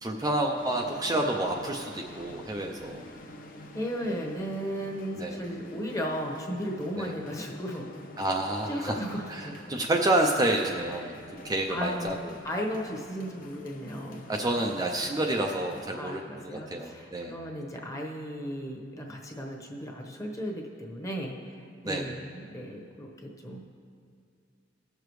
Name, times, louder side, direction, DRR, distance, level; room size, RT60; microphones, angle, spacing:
voice 1, 0.0-3.0 5.2-5.4 7.0-7.1 8.2-9.0 9.3-12.3 14.3-17.3 21.8-22.1, right 1 dB, 20° right, 1 dB, 0.5 m, -29 dB
sound 1, 0.6-15.9, left 2 dB, 50° left, 0.8 m, -47 dB
voice 2, 3.7-7.9 8.7-9.6 11.0-11.1 11.7-12.2 12.4-14.3 15.9-21.5 21.8-23.6, equal, 20° left, 0 dB, 1.2 m, -35 dB
18.0 x 6.8 x 3.2 m, 2.2 s
head